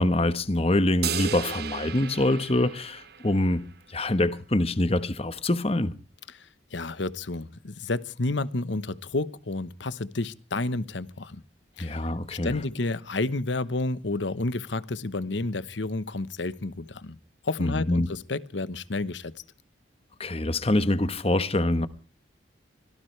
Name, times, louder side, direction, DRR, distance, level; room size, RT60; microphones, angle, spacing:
voice 1, 0.0-3.6 3.9-5.9 11.8-12.6 17.6-18.1 20.2-21.9, left 1 dB, 30° left, 1.2 m, -25 dB
sound 1, 1.0-3.6, right 8 dB, 55° right, 1.1 m, -35 dB
voice 2, 6.3-11.4 11.8-12.0 12.3-17.2 17.4-19.3, left 2 dB, 75° left, 1.0 m, -30 dB
24.5 x 18.0 x 3.3 m
head